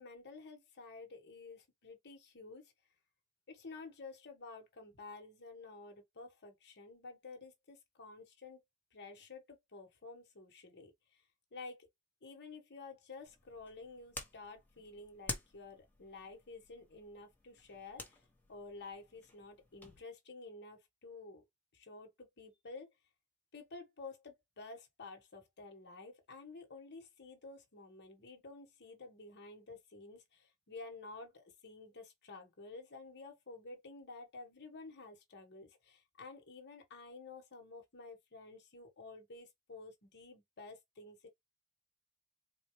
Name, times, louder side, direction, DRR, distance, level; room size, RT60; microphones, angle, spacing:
voice 1, 0.0-2.7 3.5-8.6 8.9-11.2 11.5-11.9 12.2-18.2 18.5-21.4 21.7-22.9 23.5-41.3, left 3 dB, 50° left, 1.3 m, -51 dB
sound 1, 13.3-20.0, left 2 dB, 10° left, 1.0 m, -50 dB
4.2 x 2.3 x 3.1 m
head